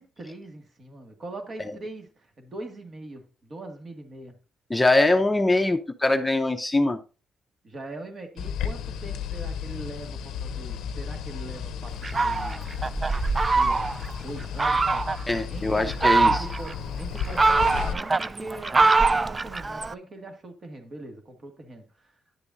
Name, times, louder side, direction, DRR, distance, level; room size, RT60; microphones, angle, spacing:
voice 1, 0.0-4.4 7.6-12.8 13.6-22.1, right 2 dB, 40° right, 1.9 m, -41 dB
voice 2, 4.7-7.0 15.3-16.4, left 2 dB, 10° left, 0.7 m, -22 dB
sound 1, 8.4-17.9, left 7 dB, 80° left, 0.6 m, -33 dB
Fowl, 12.0-14.1 14.6-15.2 15.8-16.7 17.2-19.9, right 3 dB, 25° right, 0.3 m, -23 dB
10.0 x 6.8 x 2.7 m
cardioid pair, 90°, 0 cm